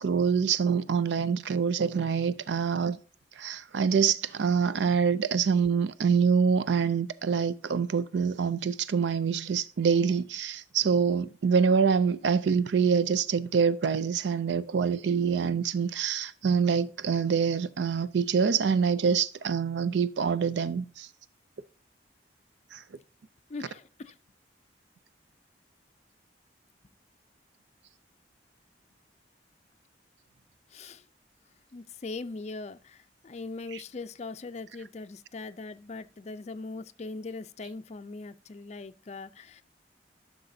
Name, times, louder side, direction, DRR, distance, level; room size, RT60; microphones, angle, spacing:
voice 1, 0.0-3.0 3.4-21.1 22.7-22.8, right 6 dB, 75° right, 0.4 m, -25 dB
voice 2, 23.5-24.2 30.7-31.1 31.7-39.6, left 3 dB, 35° left, 0.4 m, -40 dB
11.5 x 5.9 x 2.7 m
head